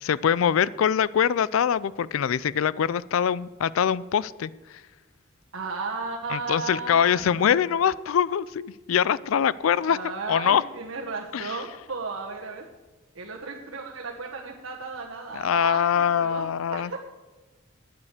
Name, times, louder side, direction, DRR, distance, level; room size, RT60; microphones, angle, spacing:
voice 1, 0.0-4.5 6.3-10.6 11.3-11.6 15.3-16.9, left 8 dB, 75° left, 20 dB, 0.4 m, -23 dB
voice 2, 5.5-7.8 9.8-12.7 13.1-17.1, right 4 dB, 80° right, -2 dB, 1.3 m, -35 dB
9.5 x 8.5 x 8.3 m, 1.2 s
head